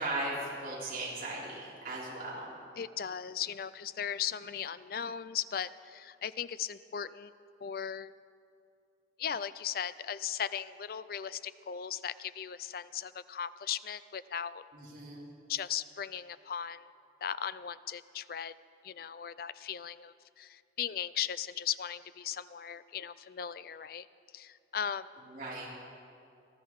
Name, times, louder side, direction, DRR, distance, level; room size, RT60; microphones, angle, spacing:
voice 1, 0.0-2.5 14.7-15.2 25.3-25.7, right 2 dB, 50° right, -7 dB, 4.0 m, -37 dB
voice 2, 2.8-7.3 7.6-8.1 9.2-14.6 15.5-16.9 17.2-18.5 18.8-24.1 24.3-25.1, left 8 dB, 50° left, 15 dB, 0.4 m, -37 dB
19.0 x 14.0 x 4.7 m, 2.5 s
head